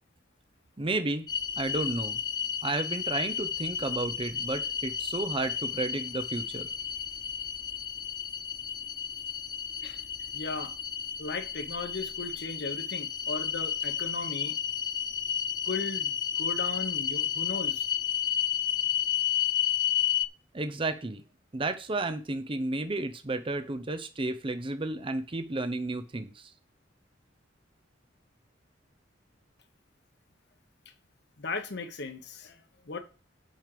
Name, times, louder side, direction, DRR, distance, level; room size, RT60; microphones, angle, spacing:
voice 1, 0.8-1.3 1.6-2.2 2.6-6.7 20.5-21.2 21.5-26.5, right 2 dB, 30° right, 0.7 m, -32 dB
sound 1, 1.3-20.3, left 8 dB, 20° left, 0.4 m, -32 dB
voice 2, 10.3-10.7 11.2-14.6 15.7-17.9 31.4-33.0, left 3 dB, 60° left, 1.2 m, -37 dB
6.3 x 5.3 x 6.7 m
head